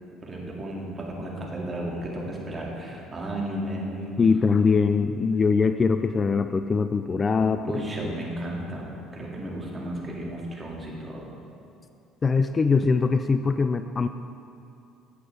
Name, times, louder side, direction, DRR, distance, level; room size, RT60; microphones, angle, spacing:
voice 1, 0.2-4.2 7.6-11.3, right 1 dB, 25° right, -2 dB, 2.1 m, -34 dB
voice 2, 4.2-7.7 12.2-14.1, left 4 dB, 30° left, 10 dB, 0.3 m, -22 dB
11.5 x 8.3 x 3.4 m, 2.6 s
hypercardioid pair, 65°, 0 cm